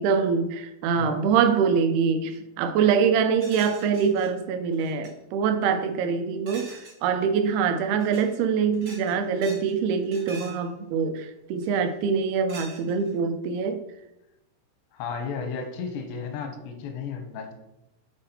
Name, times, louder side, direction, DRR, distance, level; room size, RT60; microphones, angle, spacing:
voice 1, 0.0-13.8, right 6 dB, 80° right, 8 dB, 2.4 m, -24 dB
sound 1, 3.4-4.3 4.7-5.1 6.5-7.0 7.9-8.3 8.7-9.7 10.0-10.6 11.6-11.9 12.5-13.2, right 2 dB, 60° right, 0.9 m, -44 dB
voice 2, 14.9-17.5, left 5 dB, 90° left, 5 dB, 3.0 m, -34 dB
8.2 x 3.9 x 4.2 m, 0.89 s
omnidirectional pair, 4.9 m